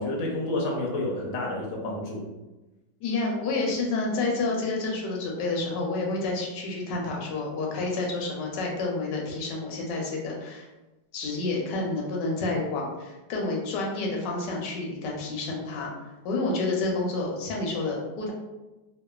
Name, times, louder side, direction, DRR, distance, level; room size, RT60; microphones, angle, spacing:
voice 1, 0.0-2.3, left 1 dB, 65° left, -2 dB, 0.8 m, -29 dB
voice 2, 3.0-10.7 11.1-15.9 16.2-18.3, left 3 dB, 85° left, -1 dB, 1.2 m, -29 dB
2.9 x 2.1 x 2.2 m, 1.1 s
omnidirectional pair, 1.9 m